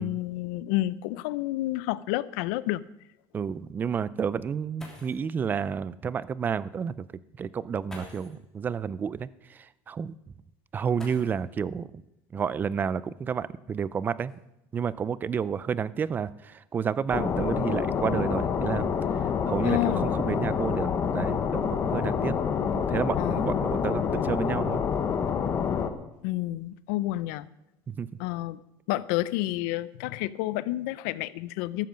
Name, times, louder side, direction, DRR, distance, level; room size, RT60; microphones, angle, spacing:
voice 1, 0.0-2.8 19.6-20.1 23.2-23.6 26.2-27.5 28.2-28.6 28.9-31.9, left 16 dB, 85° left, 18 dB, 0.6 m, -30 dB
voice 2, 3.3-7.1 7.4-9.3 9.9-10.1 10.7-12.0 12.3-14.3 14.7-18.9 19.5-22.4 22.7-24.8 27.9-28.1, right 7 dB, 20° right, 19 dB, 0.4 m, -30 dB
sound 1, 4.8-5.3 6.6-6.7 7.8-8.4 10.9-11.7 13.1-13.2 13.9-15.3 16.0-16.4 16.8-17.2, left 1 dB, 5° left, 3.1 m, -49 dB
sound 2, 17.1-25.9, left 7 dB, 30° left, 1.0 m, -27 dB
13.5 x 13.5 x 5.1 m, 0.91 s
cardioid pair, 160°, 9 cm